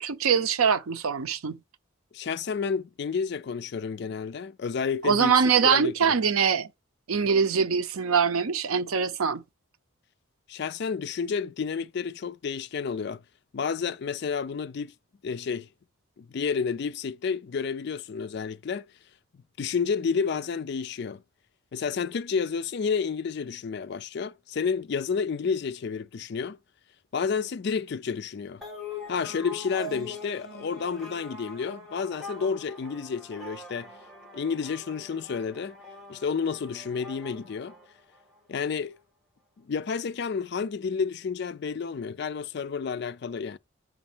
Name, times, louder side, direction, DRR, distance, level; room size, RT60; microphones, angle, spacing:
voice 1, 0.0-1.6 5.0-6.7 7.1-9.4, right 6 dB, 85° right, 0.6 m, -23 dB
voice 2, 2.1-6.1 10.5-13.2 13.5-14.9 15.2-15.7 16.2-18.8 19.6-21.2 21.7-26.6 27.1-28.6 29.1-33.9 34.3-35.8 36.1-37.8 38.5-39.0 39.6-43.6, left 5 dB, 50° left, 0.3 m, -30 dB
sound 1, 28.6-38.4, left 2 dB, ahead, 1.9 m, -43 dB
6.3 x 4.0 x 6.0 m
head